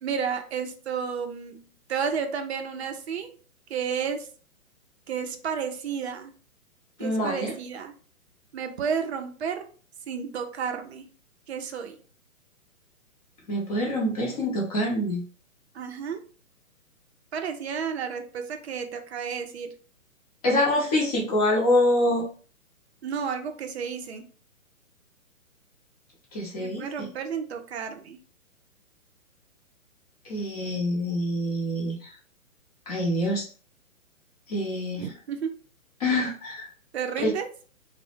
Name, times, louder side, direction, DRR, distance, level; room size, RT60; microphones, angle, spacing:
voice 1, 0.0-3.3 3.7-4.3 5.1-6.3 7.0-7.9 8.5-9.7 10.1-11.1 11.5-12.0 15.7-16.2 17.3-19.8 23.0-24.3 26.6-28.2 35.0-35.6 36.9-37.5, right 6 dB, 50° right, 6 dB, 0.4 m, -32 dB
voice 2, 7.0-7.5 13.5-15.2 20.4-22.3 26.3-26.9 30.2-32.1 32.9-33.5 34.5-35.0 36.0-36.7 37.2-37.3, left 1 dB, 25° left, -3 dB, 0.6 m, -25 dB
2.1 x 2.1 x 2.9 m, 0.40 s
hypercardioid pair, 135°, 42 cm